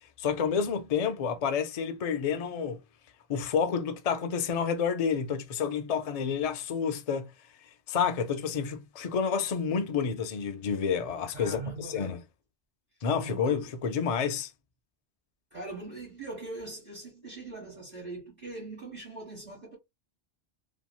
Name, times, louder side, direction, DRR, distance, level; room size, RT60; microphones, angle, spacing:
voice 1, 0.2-2.8 3.3-7.3 7.9-11.6 11.9-12.2 13.0-14.5, left 6 dB, 55° left, 0.4 m, -29 dB
voice 2, 11.3-12.2 13.2-13.7 15.5-19.8, right 2 dB, 40° right, 1.4 m, -41 dB
2.9 x 2.7 x 2.2 m
omnidirectional pair, 1.2 m